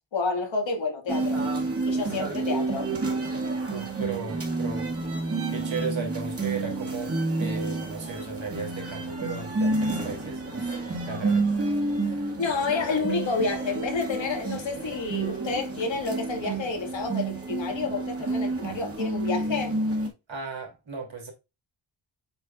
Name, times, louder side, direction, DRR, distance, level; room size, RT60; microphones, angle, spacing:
voice 1, 0.1-1.4 1.8-2.9 12.4-19.8, left 4 dB, 75° left, 2.2 m, -29 dB
sound 1, 1.1-20.1, right 3 dB, 30° right, 2.0 m, -29 dB
voice 2, 3.7-4.9 5.3-7.1 7.4-11.5 12.0-12.3 20.3-21.3, right 4 dB, 75° right, 3.1 m, -36 dB
8.0 x 4.8 x 2.5 m
wide cardioid pair, 135°, 46 cm